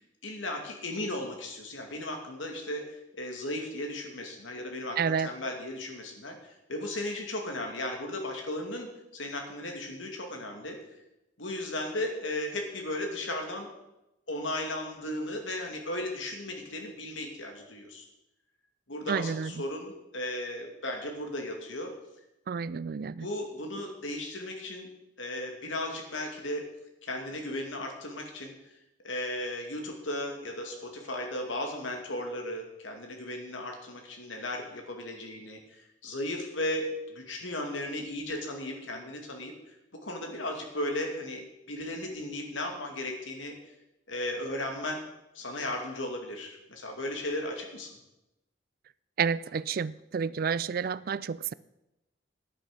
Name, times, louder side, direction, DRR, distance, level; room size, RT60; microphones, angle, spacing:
voice 1, 0.2-10.8 11.4-13.7 14.3-18.1 18.9-21.9 23.2-24.9 25.2-26.6 27.0-28.5 29.0-43.6 44.1-45.0 45.3-47.9, left 1 dB, 80° left, 3 dB, 2.4 m, -36 dB
voice 2, 5.0-5.3 19.1-19.5 22.5-23.3 49.2-51.5, right 6 dB, 50° right, 19 dB, 0.3 m, -30 dB
10.0 x 9.2 x 6.7 m, 0.92 s
head